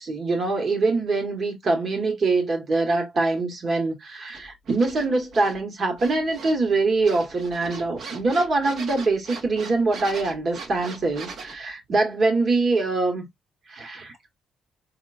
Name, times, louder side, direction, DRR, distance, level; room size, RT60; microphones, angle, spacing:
voice 1, 0.0-13.3 13.7-14.1, right 3 dB, 45° right, 1.6 m, -24 dB
sound 1, 4.3-5.6 6.0-6.7 7.0-11.6, right 4 dB, 65° right, 1.3 m, -39 dB
4.5 x 2.8 x 2.5 m
cardioid pair, 90°, 0 cm